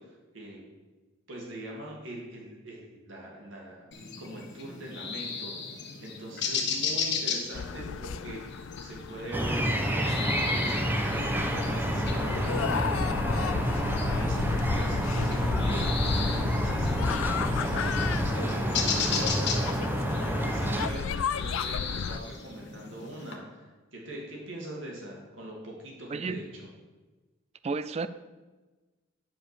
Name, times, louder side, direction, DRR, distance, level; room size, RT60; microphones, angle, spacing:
voice 1, 1.3-3.9 4.2-5.5 6.0-10.7 11.1-20.0 20.2-26.7, right 1 dB, 70° right, -3 dB, 2.7 m, -42 dB
sound 1, 3.9-23.3, left 5 dB, 55° left, 1.4 m, -37 dB
sound 2, 7.5-22.2, left 6 dB, 80° left, 0.4 m, -34 dB
sound 3, 9.3-20.9, equal, 10° right, 0.9 m, -28 dB
voice 2, 27.6-28.1, right 4 dB, 30° right, 14 dB, 0.3 m, -31 dB
10.0 x 5.1 x 7.1 m, 1.2 s
head